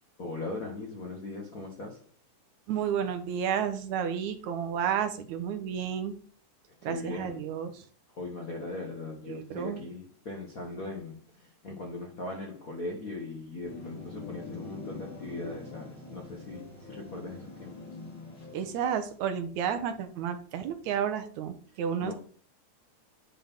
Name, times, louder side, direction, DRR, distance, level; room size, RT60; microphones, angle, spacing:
voice 1, 0.2-2.0 6.8-7.4 8.1-18.0 22.0-22.1, left 2 dB, 75° left, 0.8 m, -39 dB
voice 2, 2.7-6.2 6.8-7.8 9.3-9.8 18.5-22.1, right 8 dB, 75° right, 2.1 m, -31 dB
sound 1, 13.6-18.9, left 3 dB, 35° left, 3.1 m, -44 dB
8.6 x 5.5 x 3.6 m
omnidirectional pair, 3.5 m